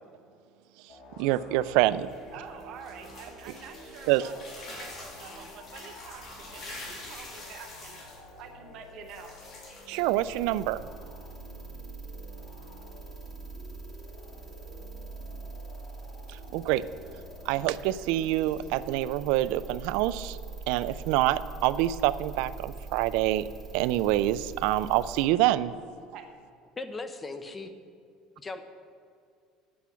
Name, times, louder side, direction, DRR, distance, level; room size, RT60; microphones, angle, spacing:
sound 1, 0.9-19.3, left 2 dB, 75° left, 1.7 m, -51 dB
voice 1, 1.2-2.1 4.1-4.2 9.9-10.8 16.3-16.8 17.5-20.4 20.7-23.4 23.7-25.7, right 15 dB, 75° right, 14 dB, 0.3 m, -26 dB
sound 2, 1.5-10.6, left 2 dB, 40° left, 2.7 m, -46 dB
voice 2, 2.3-4.3 4.7-8.0 8.4-9.4 25.7-25.8 26.1-26.3, right 7 dB, 55° right, 3 dB, 0.8 m, -47 dB
sound 3, 9.9-25.2, right 4 dB, 15° right, 2.3 m, -43 dB
voice 3, 26.8-27.7 28.4-28.6, left 3 dB, 15° left, 9 dB, 0.7 m, -38 dB
10.0 x 8.4 x 5.7 m, 2.3 s
cardioid pair, 140°, 0 cm